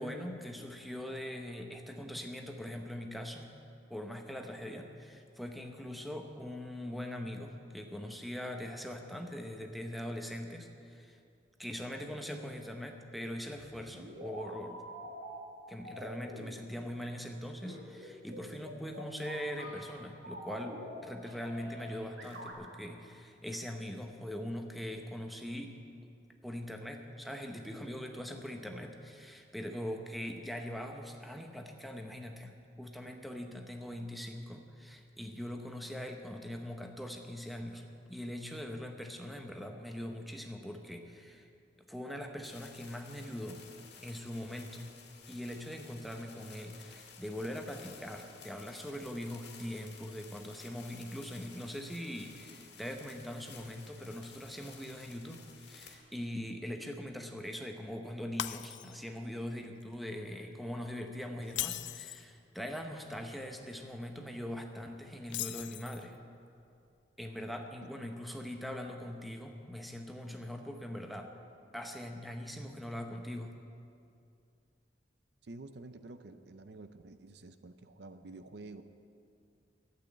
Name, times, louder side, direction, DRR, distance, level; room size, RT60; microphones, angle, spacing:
voice 1, 0.0-3.5 3.9-11.2 11.6-14.8 15.7-25.8 26.4-41.5 41.9-43.6 44.0-44.9 45.3-66.2 67.2-71.3 71.7-73.5, equal, ahead, 3 dB, 0.8 m, -42 dB
sound 1, 13.6-15.4 15.8-16.8 17.6-20.0 20.2-21.0 21.2-22.5, equal, 90° right, 2.3 m, -46 dB
sound 2, 42.4-56.0, left 6 dB, 60° left, 1.9 m, -54 dB
Shatter, 58.4-59.2 59.6-59.8 61.4-62.3 65.3-66.2, left 13 dB, 80° left, 0.4 m, -39 dB
voice 2, 75.4-78.8, right 2 dB, 60° right, 10 dB, 0.5 m, -49 dB
12.0 x 8.7 x 9.0 m, 2.5 s
head